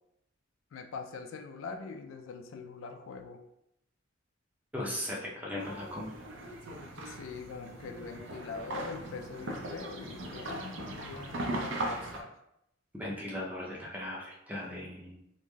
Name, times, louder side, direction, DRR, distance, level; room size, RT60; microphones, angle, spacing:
voice 1, 0.7-3.4 7.1-12.3, left 4 dB, 80° left, 5 dB, 0.3 m, -43 dB
voice 2, 4.7-6.1 9.6-9.7 13.0-15.2, left 1 dB, 10° right, -4 dB, 0.5 m, -38 dB
sound 1, 5.6-12.2, right 1 dB, 65° right, 0.5 m, -39 dB
3.1 x 2.5 x 2.2 m, 0.79 s
head